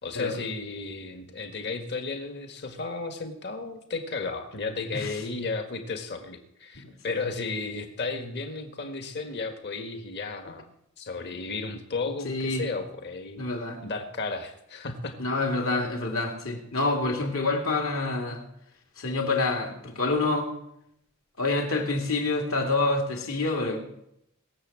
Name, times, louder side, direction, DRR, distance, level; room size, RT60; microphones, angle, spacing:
voice 1, 0.0-10.6 11.0-13.4 13.8-15.2, left 3 dB, 55° left, 5 dB, 1.6 m, -34 dB
voice 2, 12.2-12.6 13.4-13.8 15.2-18.4 19.0-20.5 21.4-23.8, left 3 dB, 75° left, 2 dB, 2.9 m, -27 dB
20.5 x 7.1 x 7.6 m, 0.80 s
head